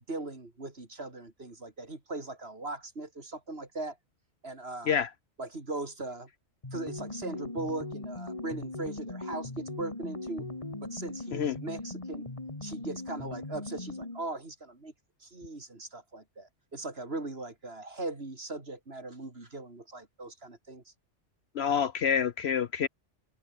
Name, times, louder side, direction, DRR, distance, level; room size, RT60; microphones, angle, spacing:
voice 1, 0.1-4.0 4.4-5.0 5.4-6.3 6.7-10.5 10.8-12.3 12.6-14.9 15.2-20.9, right 2 dB, 60° right, 3.8 m, -39 dB
sound 1, 6.6-14.3, left 2 dB, 30° left, 2.4 m, -39 dB
voice 2, 21.6-22.9, left 7 dB, 65° left, 1.0 m, -27 dB
omnidirectional pair, 1.2 m